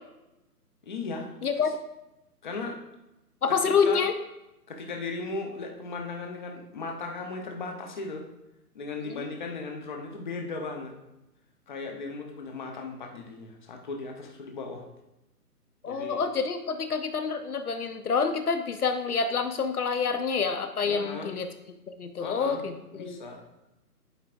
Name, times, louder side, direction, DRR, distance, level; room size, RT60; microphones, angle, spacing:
voice 1, 0.8-1.3 2.4-2.8 3.5-4.0 4.7-8.2 8.7-10.9 11.7-14.8 15.8-16.2 20.8-21.3 22.2-22.6 22.9-23.7, left 3 dB, 30° left, 2 dB, 0.8 m, -37 dB
voice 2, 1.4-1.7 3.4-4.1 9.0-9.2 15.8-21.5 22.0-23.2, left 5 dB, 65° left, 8 dB, 0.8 m, -27 dB
11.0 x 4.8 x 2.5 m, 0.94 s
figure-of-eight pair, 150°, 48 cm